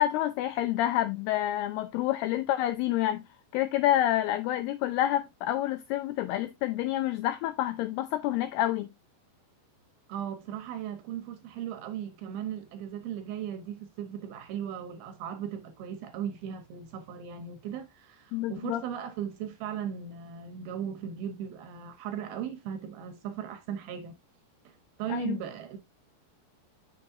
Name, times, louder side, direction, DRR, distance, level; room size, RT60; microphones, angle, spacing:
voice 1, 0.0-3.2 3.5-8.9 18.3-18.8 25.1-25.4, left 13 dB, 90° left, 2.3 m, -28 dB
voice 2, 10.1-24.1 24.7-24.8 25.0-25.8, right 9 dB, 75° right, 2.4 m, -37 dB
7.5 x 6.7 x 2.7 m
omnidirectional pair, 5.2 m